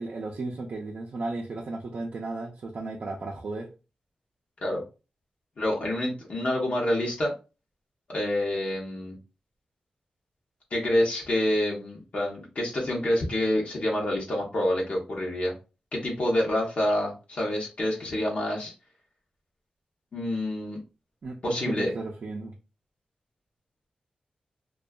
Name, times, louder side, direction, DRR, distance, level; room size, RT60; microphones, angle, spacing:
voice 1, 0.0-3.7 21.2-22.5, right 3 dB, 55° right, 0.4 m, -35 dB
voice 2, 5.6-7.3 8.1-9.2 10.7-15.5 15.9-18.7 20.1-20.8 21.4-21.9, left 1 dB, 55° left, 0.7 m, -27 dB
2.6 x 2.2 x 2.2 m
wide cardioid pair, 140°, 3 cm